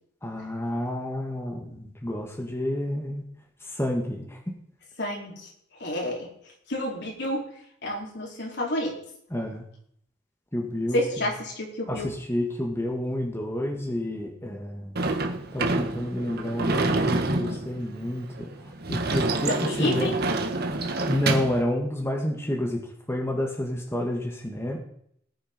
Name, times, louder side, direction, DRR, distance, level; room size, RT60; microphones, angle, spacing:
voice 1, 0.2-3.2 3.6-4.4 9.3-9.6 10.5-11.3 11.9-15.0 15.5-20.1 21.1-24.8, left 1 dB, 15° left, 0 dB, 2.1 m, -30 dB
voice 2, 5.0-5.5 5.8-6.3 6.7-7.5 7.8-9.0 10.9-12.1 19.4-20.1, left 1 dB, 60° left, -1 dB, 4.2 m, -29 dB
Sliding door / Slam, 15.0-21.6, right 2 dB, 55° right, 1.6 m, -27 dB
18.5 x 9.5 x 5.4 m, 0.69 s
head